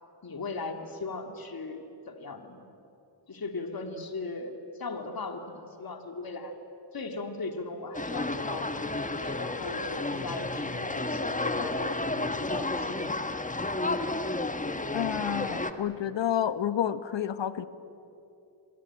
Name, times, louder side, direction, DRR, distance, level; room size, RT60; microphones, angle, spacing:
voice 1, 0.2-2.6 3.3-4.5 4.8-6.5 6.9-12.0 12.4-13.0 13.4-13.6, left 3 dB, 45° left, 6 dB, 2.7 m, -38 dB
sound 1, 7.9-15.7, left 2 dB, 15° left, 1.5 m, -31 dB
voice 2, 14.9-17.7, left 10 dB, 65° left, 13 dB, 1.2 m, -29 dB
29.0 x 22.5 x 8.8 m, 2.9 s
cardioid pair, 85°, 47 cm